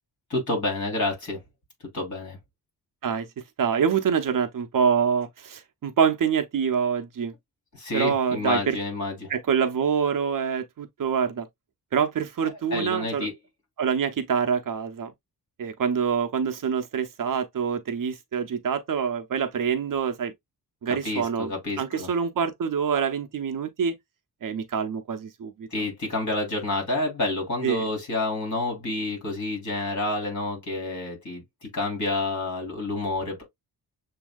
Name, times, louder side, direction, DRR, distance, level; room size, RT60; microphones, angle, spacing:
voice 1, 0.3-1.4 1.9-2.4 7.7-9.3 12.7-13.3 20.9-22.1 25.7-33.4, left 2 dB, 50° left, 3.3 m, -29 dB
voice 2, 3.6-7.3 7.9-8.8 9.3-11.5 11.9-13.3 13.8-15.1 15.6-20.3 20.8-21.5 21.8-23.9 24.4-25.7 27.6-27.9, right 7 dB, 55° right, 0.7 m, -25 dB
7.0 x 2.7 x 2.3 m
wide cardioid pair, 180°, 39 cm